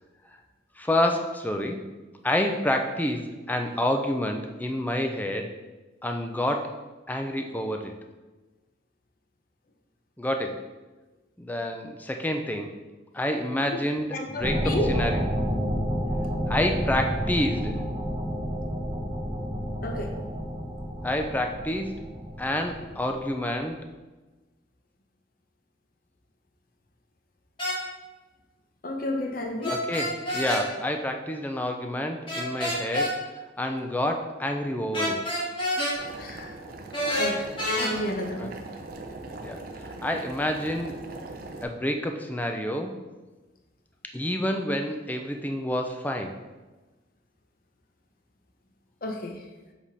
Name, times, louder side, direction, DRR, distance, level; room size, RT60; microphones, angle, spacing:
voice 1, 0.8-1.8 2.2-5.5 6.0-6.7 7.1-7.9 10.2-10.6 11.4-12.7 13.1-15.2 16.5-17.7 21.0-22.0 22.4-23.8 29.7-33.2 33.6-35.2 38.4-38.5 39.4-39.6 40.0-41.0 41.6-43.0 44.1-46.4, left 1 dB, 10° left, 4 dB, 0.4 m, -28 dB
voice 2, 14.1-14.9 19.8-20.1 28.8-29.8 36.2-36.5 37.1-37.3 37.8-38.5 49.0-49.4, left 1 dB, 50° left, 3 dB, 0.7 m, -31 dB
sound 1, 14.4-23.5, equal, 25° right, 0.9 m, -30 dB
sound 2, 27.6-27.8 29.6-30.6 32.3-33.1 34.9-36.0 36.9-37.9, equal, 25° left, 1.6 m, -27 dB
Boiling, 35.9-41.6, right 2 dB, 50° right, 0.6 m, -40 dB
7.3 x 3.6 x 4.1 m, 1.2 s
head